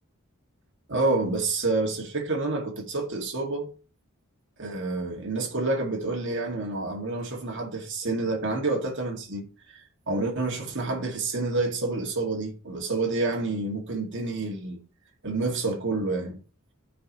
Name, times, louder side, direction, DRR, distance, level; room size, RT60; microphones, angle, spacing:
voice 1, 0.9-3.7 4.6-14.8 15.2-16.4, right 3 dB, 60° right, 2.1 m, -28 dB
12.0 x 5.1 x 3.0 m
head